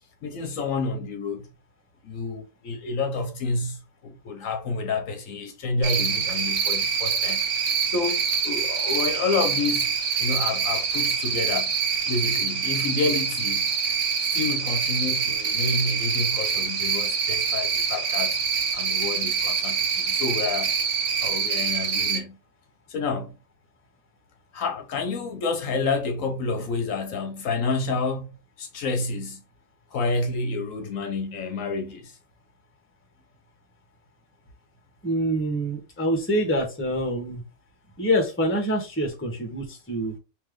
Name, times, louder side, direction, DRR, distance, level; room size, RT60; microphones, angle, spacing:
voice 1, 0.2-1.5 2.0-7.4 7.9-9.9 10.2-11.7 12.1-13.7 14.3-18.4 18.7-20.7 21.2-22.4 22.9-23.3 24.5-28.3 28.6-29.4 29.9-32.2, left 3 dB, 70° left, 1.1 m, -29 dB
Cricket, 5.8-22.2, right 6 dB, 70° right, 1.3 m, -25 dB
voice 2, 35.0-37.4 38.0-40.1, equal, 10° left, 0.9 m, -26 dB
3.2 x 3.0 x 3.5 m
omnidirectional pair, 1.5 m